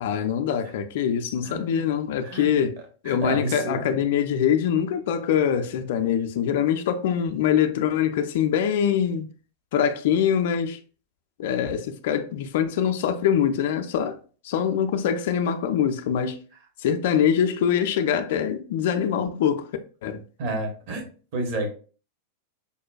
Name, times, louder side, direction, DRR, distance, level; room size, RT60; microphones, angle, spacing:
voice 1, 0.0-2.8 3.0-9.3 9.7-10.8 11.4-14.2 14.4-16.4 16.8-19.7 20.0-20.2, left 8 dB, 55° left, 0.3 m, -24 dB
voice 2, 1.4-1.9 2.2-2.5 3.1-4.0 20.4-21.0 21.3-21.7, right 2 dB, 45° right, 0.9 m, -30 dB
5.1 x 2.1 x 2.3 m
figure-of-eight pair, 90°, 0 cm